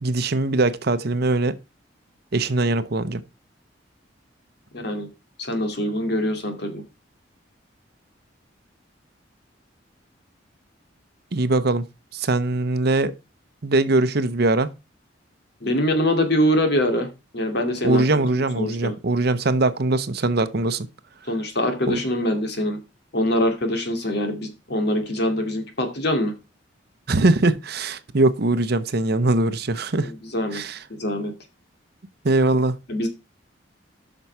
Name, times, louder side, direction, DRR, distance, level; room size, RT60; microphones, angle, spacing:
voice 1, 0.0-1.6 2.3-3.2 11.3-11.9 12.1-13.1 13.6-14.7 17.8-20.9 21.9-22.0 27.1-30.1 30.5-30.8 32.2-32.8, right 2 dB, 55° right, 0.8 m, -21 dB
voice 2, 4.7-5.1 5.4-6.8 15.6-18.0 18.3-18.9 21.3-22.8 23.1-26.3 30.0-30.6 30.9-31.3 32.9-33.1, left 1 dB, 60° left, 2.3 m, -24 dB
7.7 x 6.1 x 5.6 m
head